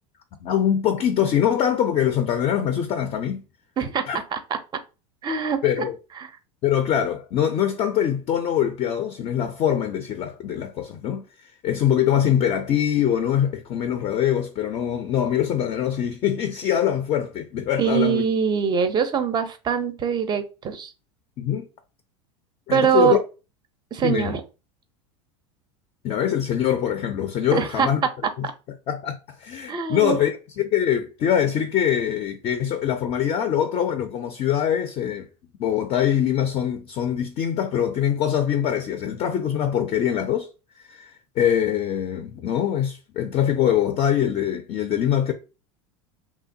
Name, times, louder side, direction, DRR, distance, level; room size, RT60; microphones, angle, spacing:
voice 1, 0.4-3.4 4.1-4.2 5.6-6.0 6.6-11.2 11.6-18.2 21.4-21.7 22.7-23.2 24.0-24.3 26.0-28.0 28.4-28.5 28.9-35.3 35.6-40.5 40.9-41.1 41.4-45.3, left 9 dB, 40° left, 0.4 m, -23 dB
voice 2, 5.2-5.9 6.2-6.3 17.8-20.9 22.7-23.2 23.9-24.4 27.5-27.9 28.4-28.5 29.7-30.2, right 7 dB, 25° right, 0.5 m, -23 dB
2.8 x 2.1 x 2.6 m
hypercardioid pair, 100°, 16 cm